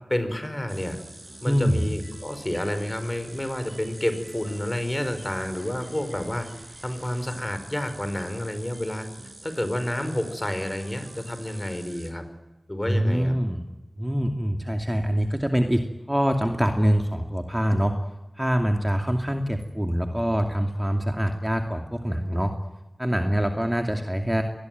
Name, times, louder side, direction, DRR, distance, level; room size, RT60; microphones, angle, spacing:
voice 1, 0.1-1.0 1.4-6.5 6.8-9.1 9.4-12.2 12.7-13.3, left 1 dB, 25° left, 9 dB, 5.0 m, -29 dB
sound 1, 0.7-12.1, right 2 dB, 40° right, 5.3 m, -46 dB
voice 2, 1.4-1.8 12.9-13.6 14.0-15.8 16.1-17.9 18.4-22.5 23.0-24.4, equal, 10° right, 4 dB, 2.4 m, -24 dB
24.5 x 20.0 x 9.4 m, 1.0 s
wide cardioid pair, 50°, 0 cm